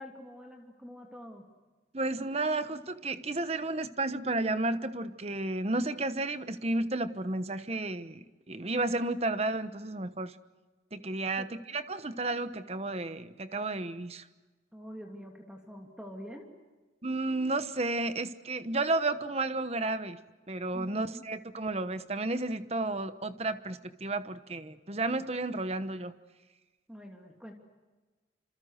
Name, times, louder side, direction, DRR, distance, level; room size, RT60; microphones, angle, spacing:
voice 1, 0.0-1.5 11.4-11.5 14.7-16.5 20.7-21.3 26.9-27.5, equal, 5° right, 2 dB, 2.7 m, -45 dB
voice 2, 1.9-10.4 10.9-14.2 17.0-20.2 20.5-26.1, right 2 dB, 35° right, 11 dB, 1.1 m, -32 dB
27.5 x 27.0 x 6.6 m, 1.3 s
head